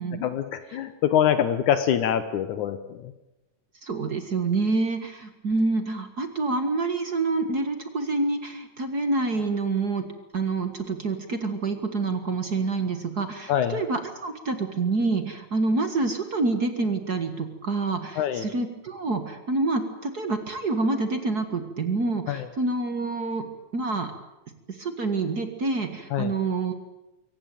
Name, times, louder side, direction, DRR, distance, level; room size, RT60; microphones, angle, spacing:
voice 1, 0.2-3.1 13.5-13.8 18.2-18.5 22.3-22.5 26.1-26.3, left 9 dB, 70° left, 10 dB, 2.4 m, -24 dB
voice 2, 3.8-10.1 10.3-23.4 23.7-24.1 24.8-26.7, right 3 dB, 40° right, 8 dB, 1.6 m, -27 dB
23.5 x 17.5 x 9.2 m, 0.98 s
omnidirectional pair, 3.7 m